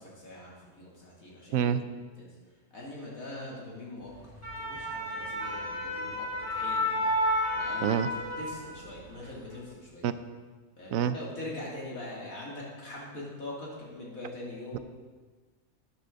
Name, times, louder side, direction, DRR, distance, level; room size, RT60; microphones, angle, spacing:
voice 1, 0.0-1.7 2.2-2.4 2.7-4.1 4.6-6.9 7.5-10.1 10.8-14.8, left 1 dB, 80° left, -5 dB, 3.3 m, -42 dB
voice 2, 1.5-1.8 7.8-8.1 10.0-10.1 10.9-11.1, right 9 dB, 80° right, 12 dB, 1.0 m, -26 dB
sound 1, 4.2-8.9 9.3-9.5, left 1 dB, 10° left, 4.2 m, -31 dB
13.0 x 9.7 x 3.9 m, 1.4 s
omnidirectional pair, 1.4 m